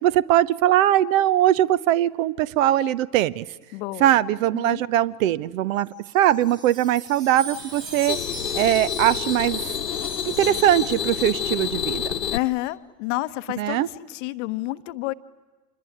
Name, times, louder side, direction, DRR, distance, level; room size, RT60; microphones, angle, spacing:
voice 1, 0.0-3.4 4.0-5.9 6.1-8.2 8.5-9.6 10.3-12.2 13.6-13.9, right 12 dB, 55° right, 19 dB, 0.8 m, -21 dB
voice 2, 3.7-4.2 4.5-4.8 12.3-15.1, left 19 dB, 50° left, 14 dB, 1.0 m, -29 dB
Wind chime, 5.8-12.0, right 4 dB, 85° right, 4.2 m, -40 dB
sound 1, 7.6-12.4, left 9 dB, 85° left, 0.8 m, -29 dB
26.5 x 21.0 x 10.0 m, 1.3 s
figure-of-eight pair, 85°, 48 cm